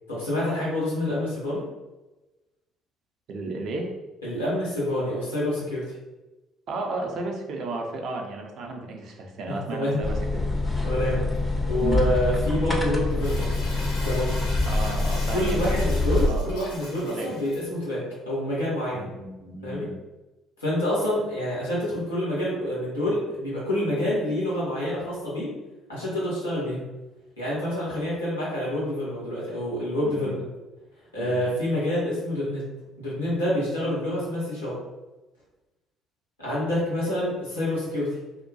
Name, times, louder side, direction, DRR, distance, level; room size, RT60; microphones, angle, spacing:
voice 1, 0.1-1.6 4.2-5.8 9.5-10.0 10.8-11.2 11.7-13.5 13.9-14.4 15.3-19.0 19.6-19.9 20.6-25.5 25.9-26.8 27.4-30.4 31.1-32.6 33.0-34.7 36.4-38.1, left 1 dB, 85° left, -7 dB, 1.1 m, -27 dB
voice 2, 3.3-3.9 6.7-10.4 11.8-12.0 14.7-15.8 16.3-16.6 16.9-17.3 18.9-20.0 30.0-30.4 31.2-31.4, right 3 dB, 50° right, 1 dB, 0.5 m, -33 dB
sound 1, 10.0-16.3, left 2 dB, 15° left, 0.5 m, -25 dB
Crumpling crinkling, 13.2-17.6, left 1 dB, 65° left, 0.8 m, -39 dB
2.8 x 2.1 x 2.6 m, 1.1 s
figure-of-eight pair, 50°, 0 cm